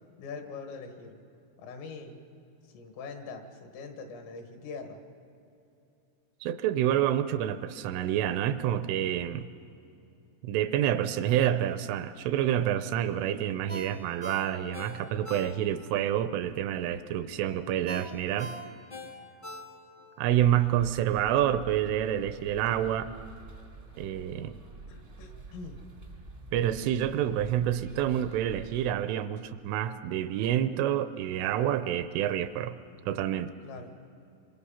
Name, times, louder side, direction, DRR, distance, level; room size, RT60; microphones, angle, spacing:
voice 1, 0.2-1.2 1.6-2.2 2.7-5.0 24.9-25.8 33.6-33.9, left 4 dB, 80° left, 5 dB, 4.4 m, -42 dB
voice 2, 6.4-9.5 10.4-18.5 20.2-23.1 24.0-24.6 26.5-32.7 33.1-33.5, right 11 dB, 80° right, 11 dB, 3.1 m, -28 dB
Ringtone, 13.7-15.9 16.3-16.4 17.9-20.1 20.5-20.6, left 1 dB, 60° left, 0.5 m, -42 dB
sound 1, 20.3-28.9, right 3 dB, 45° right, 0.6 m, -48 dB
26.5 x 25.5 x 5.6 m, 2.8 s
omnidirectional pair, 5.8 m